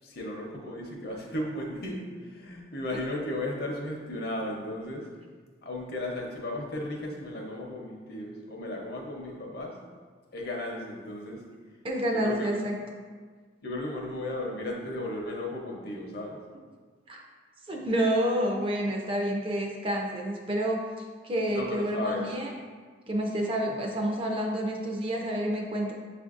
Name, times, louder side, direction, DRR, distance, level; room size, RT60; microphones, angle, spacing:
voice 1, 0.0-5.1 5.6-9.8 10.3-11.4 12.1-12.5 13.6-16.4 21.5-22.3, left 1 dB, 55° left, -1 dB, 0.7 m, -35 dB
voice 2, 11.8-12.8 17.1-17.2 17.7-20.8 21.2-22.5 23.1-25.9, right 1 dB, 30° right, 0 dB, 0.4 m, -28 dB
7.1 x 2.5 x 2.4 m, 1.5 s
head